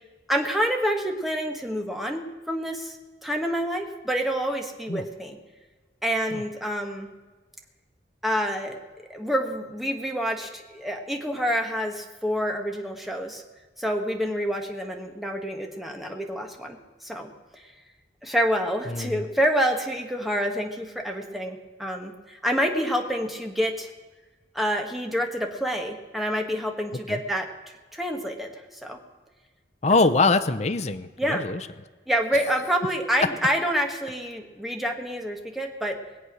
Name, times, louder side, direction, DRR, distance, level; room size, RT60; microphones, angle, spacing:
voice 1, 0.3-3.0 3.2-5.4 6.0-7.1 8.2-8.8 9.1-13.4 13.8-17.7 18.2-23.9 24.5-29.0 31.2-31.4 32.1-36.0, equal, ahead, 2 dB, 1.4 m, -28 dB
voice 2, 18.9-19.2 27.1-27.2 29.8-31.6, left 3 dB, 40° left, 8 dB, 0.7 m, -23 dB
20.5 x 8.1 x 6.2 m, 1.3 s
head